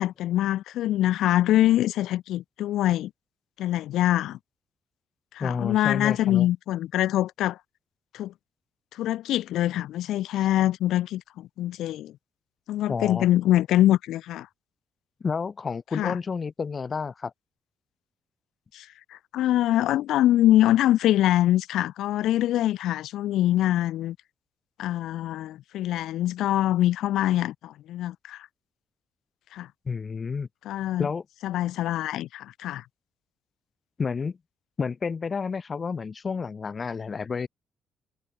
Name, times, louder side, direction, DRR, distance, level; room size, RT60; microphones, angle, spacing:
voice 1, 0.0-3.1 3.6-4.4 5.3-7.6 8.1-8.3 8.9-12.1 12.7-14.5 15.9-16.2 18.7-24.2 24.8-28.5 29.5-29.7 30.7-31.1 31.4-32.8, left 13 dB, 85° left, 7.4 m, -24 dB
voice 2, 5.4-6.5 12.9-13.3 15.2-17.3 29.9-30.5 31.0-31.2 34.0-34.4 34.8-37.5, left 5 dB, 40° left, 5.9 m, -30 dB
cardioid pair, 90°, 0 cm